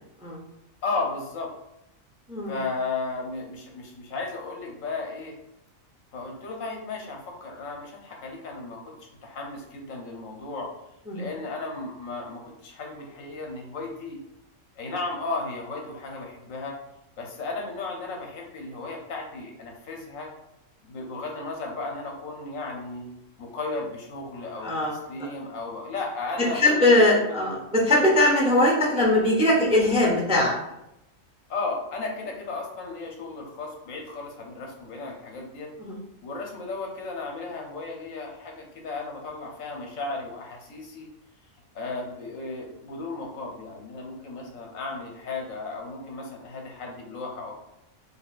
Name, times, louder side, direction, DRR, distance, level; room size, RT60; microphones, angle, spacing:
voice 1, 0.8-1.5 2.5-5.3 6.1-8.8 9.2-10.7 11.1-14.2 14.8-16.7 17.2-20.3 20.9-23.1 23.4-27.6 31.5-35.7 36.2-41.1 41.7-47.5, left 3 dB, 80° left, 0 dB, 1.1 m, -34 dB
voice 2, 24.6-24.9 26.5-30.6 35.8-36.0, left 1 dB, 10° right, -3 dB, 0.4 m, -21 dB
4.1 x 3.3 x 2.4 m, 0.86 s
omnidirectional pair, 1.4 m